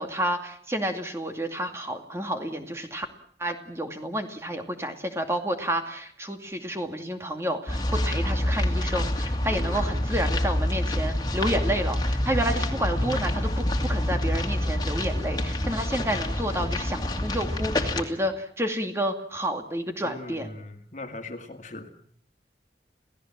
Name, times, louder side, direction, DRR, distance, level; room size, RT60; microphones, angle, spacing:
voice 1, 0.0-3.1 3.4-20.5, right 1 dB, 15° right, 5 dB, 2.4 m, -30 dB
sound 1, 7.7-18.0, left 1 dB, 25° left, 2.6 m, -27 dB
voice 2, 9.5-10.1 12.5-12.9 20.0-21.9, left 2 dB, 40° left, 6 dB, 2.2 m, -40 dB
28.5 x 17.0 x 7.6 m, 0.62 s
head